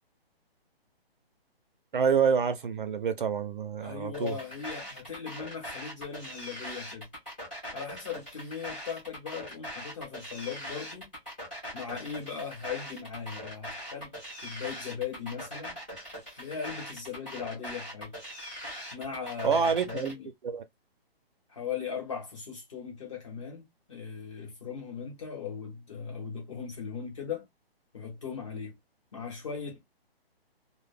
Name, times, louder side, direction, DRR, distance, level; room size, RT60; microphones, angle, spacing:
voice 1, 1.9-4.3 19.4-20.1 20.4-20.6, right 6 dB, 55° right, 0.5 m, -27 dB
voice 2, 3.8-7.1 7.7-11.1 11.7-15.8 16.4-18.1 18.9-20.3 21.5-27.5 27.9-28.8 29.1-29.8, left 6 dB, 30° left, 0.9 m, -38 dB
sound 1, 4.1-20.1, equal, 10° left, 0.6 m, -41 dB
2.1 x 2.1 x 3.2 m
hypercardioid pair, 170°, 31 cm